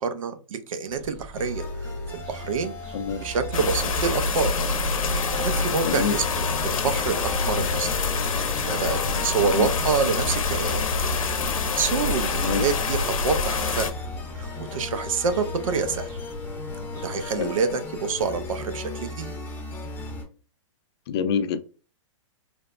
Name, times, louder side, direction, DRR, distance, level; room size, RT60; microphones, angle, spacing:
voice 1, 0.0-1.7 2.1-2.7 3.2-4.5 5.3-7.9 8.7-10.8 11.5-13.9 14.4-16.1 17.0-19.3, right 5 dB, 85° right, 0.6 m, -27 dB
sound 1, 0.9-17.5, left 1 dB, 30° right, 0.6 m, -38 dB
sound 2, 1.3-20.2, left 1 dB, 10° left, 0.6 m, -36 dB
sound 3, 3.5-13.9, left 5 dB, 90° left, 0.7 m, -26 dB
voice 2, 5.8-6.1 9.5-9.7 12.4-12.6 17.4-17.5 21.1-21.6, left 7 dB, 50° left, 0.4 m, -26 dB
3.2 x 2.0 x 2.4 m
hypercardioid pair, 145°, 17 cm